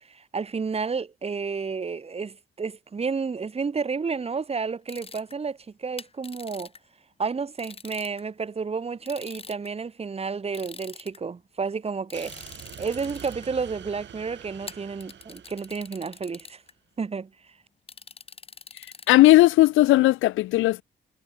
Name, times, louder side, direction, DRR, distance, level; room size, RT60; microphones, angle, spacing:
voice 1, 0.1-6.7 7.2-16.6 17.0-17.3, right 5 dB, 30° right, 1.7 m, -31 dB
sound 1, 4.9-5.3 6.0-6.8 7.6-8.2 9.1-9.7 10.5-11.2 12.1-13.5 14.7-16.7 17.9-19.3, left 4 dB, 30° left, 2.2 m, -44 dB
sound 2, 12.1-16.5, right 10 dB, 65° right, 5.8 m, -45 dB
voice 2, 19.1-20.8, left 17 dB, 85° left, 0.5 m, -17 dB
cardioid pair, 90°, 20 cm